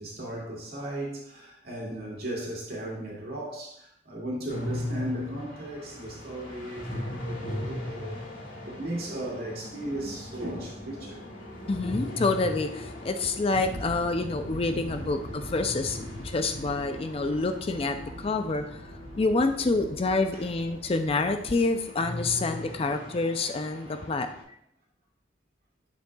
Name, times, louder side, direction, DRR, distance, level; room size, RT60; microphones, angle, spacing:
voice 1, 0.0-8.2 8.6-11.2 14.9-15.1 16.1-16.2 20.3-20.4 23.8-24.0, right 1 dB, 55° right, -3 dB, 2.3 m, -36 dB
sound 1, 4.5-24.4, left 1 dB, 85° left, 2.8 m, -39 dB
voice 2, 11.7-18.8 19.1-24.3, left 3 dB, 30° left, 7 dB, 0.4 m, -27 dB
sound 2, 13.5-22.9, equal, 90° right, 1.7 m, -42 dB
8.0 x 6.5 x 2.3 m, 0.73 s
head